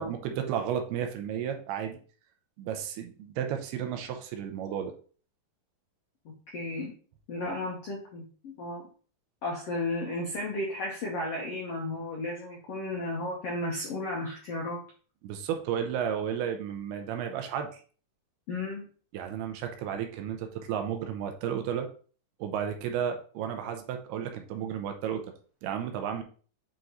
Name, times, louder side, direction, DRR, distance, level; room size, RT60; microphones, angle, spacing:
voice 1, 0.0-2.0 2.6-4.9 15.2-17.7 19.1-21.9 22.4-25.2 25.6-26.2, right 8 dB, 80° right, 5 dB, 2.7 m, -33 dB
voice 2, 6.2-6.9 7.3-8.8 9.4-14.8 18.5-18.9, left 2 dB, 90° left, -1 dB, 1.4 m, -34 dB
8.4 x 3.1 x 3.9 m, 0.41 s
omnidirectional pair, 4.7 m